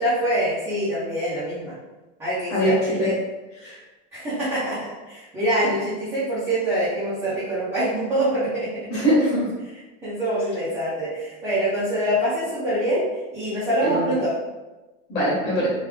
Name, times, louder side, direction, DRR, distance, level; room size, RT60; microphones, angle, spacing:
voice 1, 0.0-1.7 2.2-3.1 4.1-8.7 10.0-13.0 13.3-14.3, right 1 dB, 5° right, -14 dB, 0.4 m, -25 dB
voice 2, 2.5-3.1 3.6-3.8 8.9-9.5 13.8-14.1 15.1-15.7, equal, 25° left, -8 dB, 1.3 m, -22 dB
3.2 x 2.3 x 3.1 m, 1.1 s
supercardioid pair, 175°, 38 cm